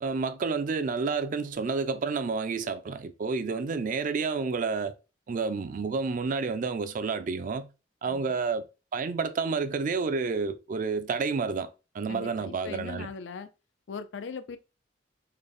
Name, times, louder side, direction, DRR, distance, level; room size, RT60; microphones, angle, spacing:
voice 1, 0.0-4.9 5.3-7.7 8.0-11.7 11.9-13.1, right 4 dB, 45° right, 0.4 m, -30 dB
voice 2, 12.1-13.5 13.9-14.6, left 5 dB, 90° left, 0.4 m, -40 dB
3.8 x 2.1 x 3.4 m
head